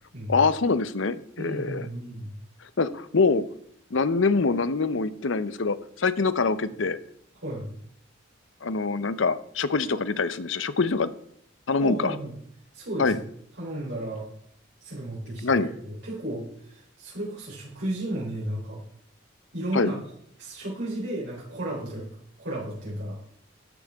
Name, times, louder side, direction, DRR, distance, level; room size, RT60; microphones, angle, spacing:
voice 1, 0.3-1.9 2.8-3.4 3.9-7.0 8.6-11.1 11.7-12.1 13.0-13.2 15.4-15.7 19.7-19.9, left 4 dB, 75° left, 14 dB, 0.7 m, -24 dB
voice 2, 1.4-2.3 7.4-7.7 11.8-12.3 12.7-13.2 13.6-14.2 14.8-18.8 19.5-20.0 20.4-22.1 22.4-23.2, right 1 dB, 65° right, -5 dB, 3.8 m, -33 dB
13.0 x 11.0 x 3.6 m, 0.66 s
head